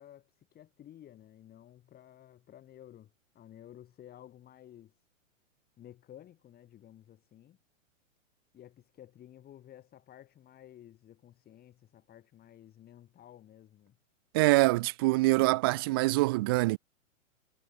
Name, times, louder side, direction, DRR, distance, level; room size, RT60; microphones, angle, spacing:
voice 1, 0.0-5.0 5.8-7.6 8.5-14.0, left 11 dB, 25° left, 3.5 m, -54 dB
voice 2, 14.3-16.8, right 21 dB, 20° right, 0.3 m, -25 dB
hypercardioid pair, 125°, 40 cm